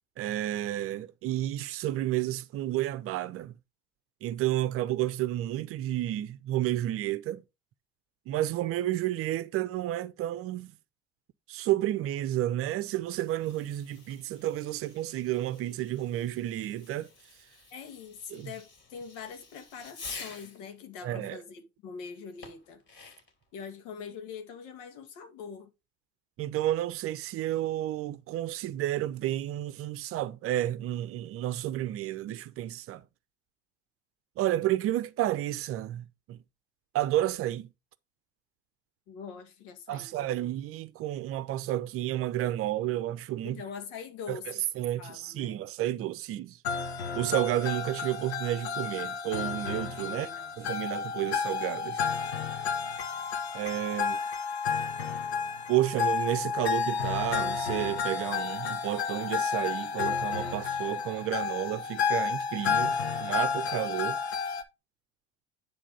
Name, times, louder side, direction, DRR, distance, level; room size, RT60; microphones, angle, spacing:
voice 1, 0.2-3.6 4.2-7.4 8.3-10.7 11.5-17.1 18.3-18.5 21.0-21.4 26.4-33.0 34.4-36.4 36.9-37.7 39.9-43.6 44.3-46.6 47.1-50.3 50.6-52.0 53.5-54.2 55.7-64.2, right 14 dB, 45° right, 0.7 m, -31 dB
Fireworks, 13.0-20.7 22.4-23.4, left 3 dB, 35° left, 3.9 m, -50 dB
voice 2, 17.7-23.1 23.5-25.7 39.1-40.4 43.4-44.6 45.0-45.6 50.0-50.5, left 6 dB, 60° left, 2.0 m, -43 dB
sound 1, 46.6-64.6, left 6 dB, 80° left, 1.1 m, -31 dB
10.0 x 3.7 x 5.3 m
figure-of-eight pair, 65°, 32 cm